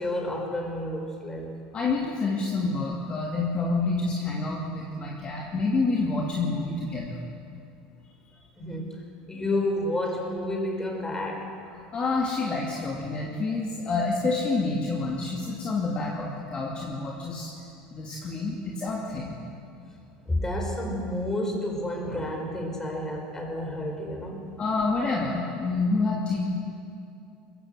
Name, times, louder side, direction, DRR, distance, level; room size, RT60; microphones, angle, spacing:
voice 1, 0.0-1.6 8.6-11.7 20.2-24.6, left 1 dB, 15° left, 1 dB, 5.0 m, -30 dB
voice 2, 1.7-7.2 11.9-17.5 17.9-19.4 24.6-26.5, left 3 dB, 35° left, -2 dB, 2.5 m, -28 dB
21.0 x 15.5 x 8.0 m, 2.6 s
supercardioid pair, 105°, 4 cm